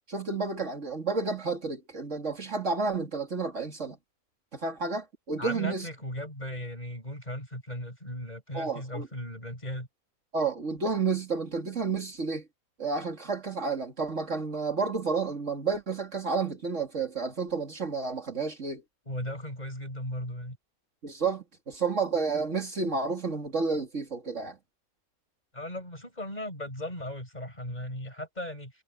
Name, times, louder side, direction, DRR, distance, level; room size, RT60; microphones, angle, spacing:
voice 1, 0.1-4.0 4.5-5.9 8.5-9.1 10.3-12.5 12.8-18.8 21.0-24.6, right 4 dB, 55° right, 2.8 m, -31 dB
voice 2, 5.4-9.9 19.1-20.6 25.5-28.7, left 1 dB, 30° left, 7.7 m, -37 dB
omnidirectional pair, 1.5 m